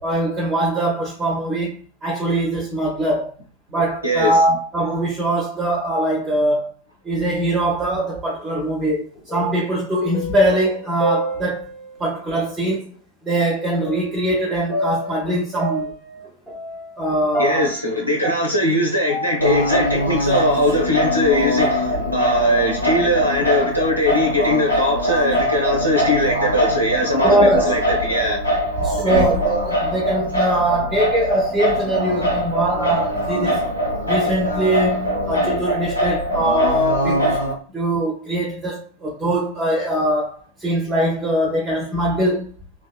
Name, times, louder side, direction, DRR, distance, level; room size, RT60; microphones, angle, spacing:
voice 1, 0.0-3.3 3.7-6.7 7.0-11.6 12.0-12.9 13.2-15.9 17.0-17.7 27.2-27.7 28.8-33.7 34.1-37.4 37.7-42.5, right 1 dB, 15° right, 0.7 m, -22 dB
voice 2, 4.0-4.4 17.4-28.4 29.0-29.3, left 1 dB, 90° right, 0.5 m, -20 dB
sound 1, 8.3-8.9 9.2-12.0 12.7-12.8 13.8-19.8, right 1 dB, 20° left, 1.0 m, -30 dB
Singing, 19.4-37.5, equal, 80° left, 0.8 m, -22 dB
2.9 x 2.3 x 2.2 m
figure-of-eight pair, 90°, 0 cm